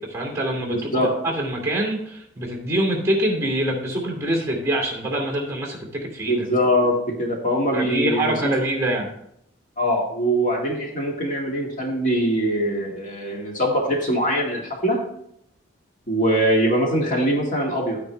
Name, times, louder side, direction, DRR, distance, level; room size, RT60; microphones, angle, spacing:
voice 1, 0.1-0.8 1.2-6.4 7.7-9.1, right 1 dB, 15° right, 0 dB, 2.5 m, -24 dB
voice 2, 0.7-1.1 6.3-8.6 9.8-15.0 16.1-18.0, equal, 40° left, -1 dB, 1.9 m, -22 dB
11.5 x 9.2 x 3.3 m, 0.75 s
head